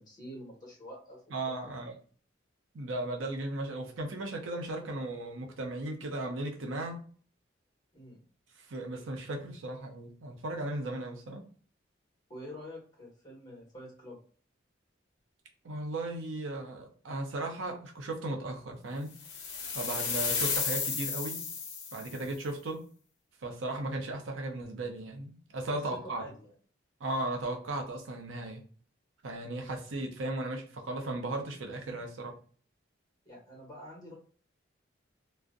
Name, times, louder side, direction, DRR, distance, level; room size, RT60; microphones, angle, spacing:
voice 1, 0.0-1.2 1.4-1.7 7.9-8.2 12.3-14.2 25.7-26.5 33.2-34.1, equal, 20° left, -3 dB, 1.1 m, -47 dB
voice 2, 1.3-2.0 2.7-7.0 8.7-11.4 15.6-19.1 19.7-21.4 21.9-22.8 23.4-26.2 27.0-28.6 29.2-32.3, right 2 dB, 85° right, 3 dB, 0.6 m, -36 dB
sound 1, 19.2-22.2, left 5 dB, 60° left, 0.5 m, -33 dB
2.5 x 2.0 x 2.4 m, 0.43 s
head